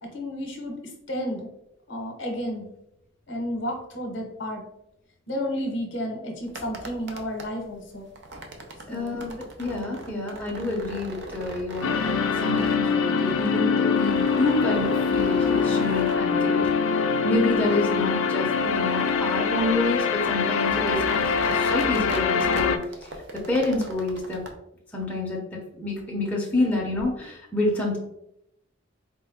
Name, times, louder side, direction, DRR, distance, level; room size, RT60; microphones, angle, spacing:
voice 1, 0.0-1.5 1.9-2.7 3.3-4.6 5.3-8.1 8.9-9.3, equal, 60° left, 2 dB, 0.8 m, -32 dB
sound 1, 6.4-24.5, right 1 dB, 55° right, 0.5 m, -40 dB
voice 2, 8.9-9.3 9.6-16.7 16.9-22.8 23.3-24.4 24.9-25.4 25.8-28.0, left 2 dB, 5° left, -4 dB, 0.7 m, -28 dB
sound 2, 11.8-22.8, left 6 dB, 85° left, 0.3 m, -24 dB
4.2 x 2.1 x 3.5 m, 0.80 s
head